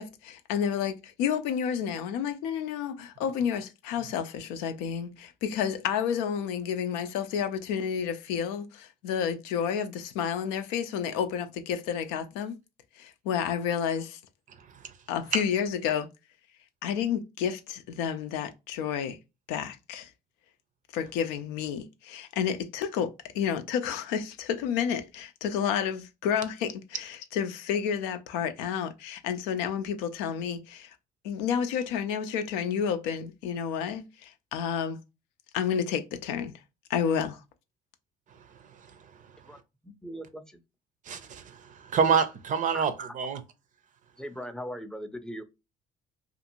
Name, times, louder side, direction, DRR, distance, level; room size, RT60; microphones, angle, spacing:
voice 1, 0.0-12.6 13.0-14.2 15.1-16.1 16.8-19.2 19.5-20.1 20.9-30.9 31.2-35.0 35.5-36.5 36.9-37.4, left 8 dB, 80° left, 0.4 m, -30 dB
voice 2, 39.8-40.6 42.7-42.8 44.2-45.4, equal, 5° left, 0.5 m, -39 dB
voice 3, 41.1-43.4, right 6 dB, 50° right, 0.5 m, -27 dB
2.5 x 2.5 x 2.8 m
supercardioid pair, 70°, 17 cm